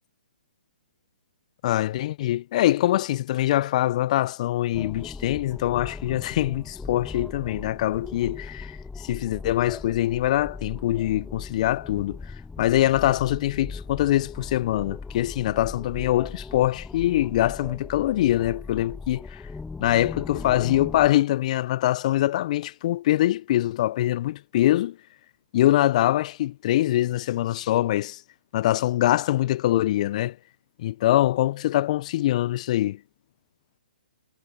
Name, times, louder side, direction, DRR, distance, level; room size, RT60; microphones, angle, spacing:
voice 1, 1.6-8.7 9.0-12.2 12.6-19.2 19.8-25.0 25.5-28.2 28.5-30.4 30.8-33.0, left 14 dB, 45° left, 0.6 m, -23 dB
sound 1, 4.7-21.1, left 4 dB, 5° left, 0.4 m, -39 dB
figure-of-eight pair, 130°, 5 cm